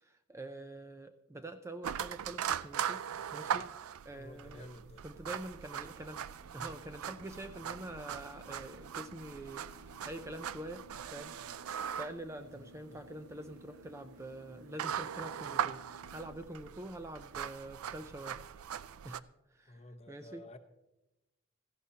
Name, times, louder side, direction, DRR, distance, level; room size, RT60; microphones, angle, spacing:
voice 1, 0.0-3.0 3.3-3.7 4.0-4.7 5.0-6.2 6.5-10.8 11.1-18.5 19.0-19.2 19.5-20.4, right 1 dB, 15° right, 8 dB, 0.4 m, -46 dB
sound 1, 1.8-19.2, right 9 dB, 85° right, 0.4 m, -40 dB
voice 2, 4.1-5.0 12.5-13.0 19.7-20.6, left 1 dB, 30° left, 7 dB, 0.8 m, -52 dB
sound 2, 5.8-16.5, left 1 dB, 65° right, 1.3 m, -58 dB
16.5 x 14.5 x 2.8 m, 0.96 s
head